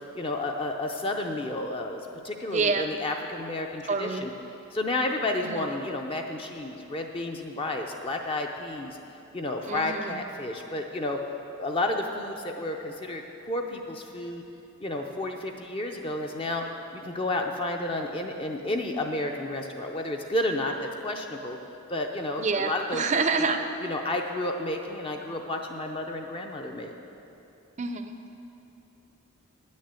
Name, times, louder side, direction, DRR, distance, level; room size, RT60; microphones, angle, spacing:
voice 1, 0.1-4.3 4.7-9.0 9.3-11.2 11.6-14.4 14.8-16.6 16.9-21.6 21.9-23.2 23.9-26.9, left 2 dB, 25° left, 3 dB, 0.5 m, -31 dB
voice 2, 2.5-2.9 3.9-4.3 5.4-5.6 9.6-10.2 22.4-23.6 27.8-28.3, right 4 dB, 30° right, 7 dB, 0.5 m, -28 dB
9.9 x 6.4 x 8.2 m, 2.9 s
head